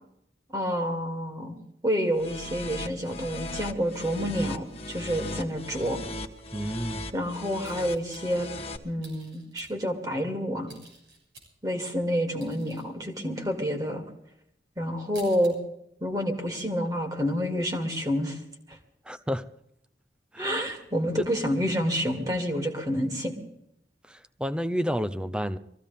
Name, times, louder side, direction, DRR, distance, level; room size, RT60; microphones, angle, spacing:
voice 1, 0.5-1.6 1.8-6.0 7.1-8.5 8.8-10.7 11.6-14.0 14.8-15.5 16.0-18.4 20.4-23.3, equal, 20° right, 3 dB, 2.6 m, -28 dB
sound 1, 2.1-8.8, left 2 dB, 35° left, 1.4 m, -38 dB
voice 2, 6.5-7.0 19.1-19.4 20.3-20.5 24.1-25.6, equal, 5° right, 12 dB, 0.6 m, -30 dB
sound 2, 7.6-8.5 9.0-9.9 10.7-11.8 12.1-12.9 13.1-13.5 14.0-14.1 14.6-14.7 14.9-15.5 15.9-16.1 16.4-17.4, right 3 dB, 85° right, 6.9 m, -52 dB
24.0 x 15.5 x 3.5 m, 0.77 s
head